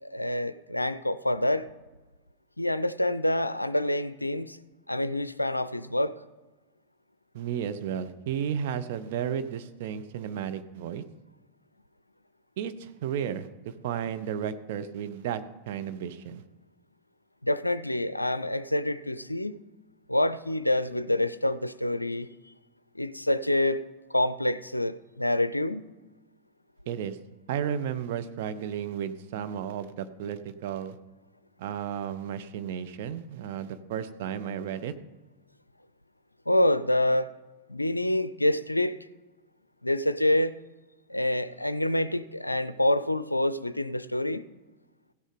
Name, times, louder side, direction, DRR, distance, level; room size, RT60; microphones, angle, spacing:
voice 1, 0.0-1.7 2.6-4.6 4.9-6.2 17.4-19.6 20.1-22.3 22.9-23.8 24.1-25.9 36.5-37.3 37.7-39.0 39.8-40.5 41.1-44.5, left 1 dB, 85° left, 0.4 m, -27 dB
voice 2, 7.3-11.0 12.6-16.4 26.9-27.2 27.5-31.0 31.6-34.9, right 8 dB, 50° right, 0.7 m, -33 dB
16.0 x 6.4 x 5.1 m
figure-of-eight pair, 90°, 0 cm